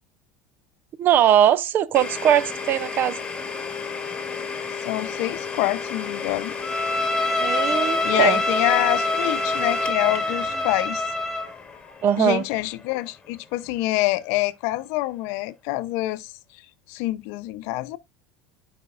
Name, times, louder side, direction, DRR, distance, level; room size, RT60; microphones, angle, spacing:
voice 1, 1.0-3.2 7.4-8.4 12.0-12.4, right 10 dB, 50° right, 0.6 m, -20 dB
Domestic sounds home sounds, 1.9-13.6, left 5 dB, 20° left, 1.9 m, -34 dB
voice 2, 4.8-6.5 7.7-11.0 12.2-16.3 16.9-18.0, left 18 dB, 70° left, 0.7 m, -26 dB
Bowed string instrument, 6.6-11.5, left 2 dB, 5° right, 2.7 m, -25 dB
13.5 x 5.1 x 2.5 m
supercardioid pair, 100°, 5 cm